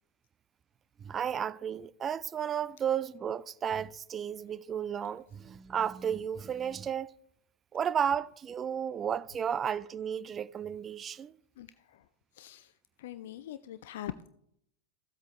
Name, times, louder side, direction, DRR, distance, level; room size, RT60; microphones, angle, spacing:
voice 1, 1.0-7.1 7.7-11.4, right 8 dB, 25° right, 0.3 m, -33 dB
voice 2, 11.6-14.3, left 12 dB, 55° left, 0.4 m, -44 dB
14.5 x 8.1 x 3.2 m
figure-of-eight pair, 90°, 0 cm